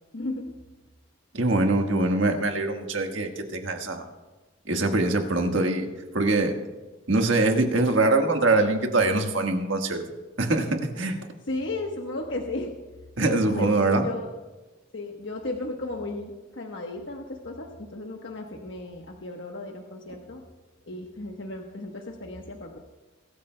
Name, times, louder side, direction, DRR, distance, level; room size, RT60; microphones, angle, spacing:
voice 1, 0.1-0.5 11.5-12.7 13.2-14.3 14.9-20.4 20.9-22.8, left 2 dB, 65° left, 1 dB, 1.1 m, -34 dB
voice 2, 1.3-4.0 4.7-5.9 6.1-6.5 7.1-10.0 10.4-11.2 13.2-14.1, right 2 dB, 75° right, 3 dB, 1.5 m, -23 dB
22.0 x 13.5 x 2.2 m, 1.2 s
head